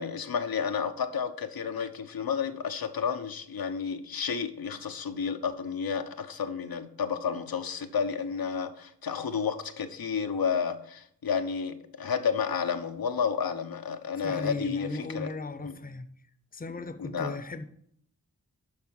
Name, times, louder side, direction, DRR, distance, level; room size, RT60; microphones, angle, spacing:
voice 1, 0.0-14.9 15.1-15.3 15.6-15.7 17.0-17.4, left 6 dB, 90° left, 0.8 m, -31 dB
voice 2, 14.2-16.1 16.5-17.6, left 3 dB, 25° left, 0.6 m, -36 dB
12.0 x 4.3 x 5.8 m
wide cardioid pair, 85°, 35 cm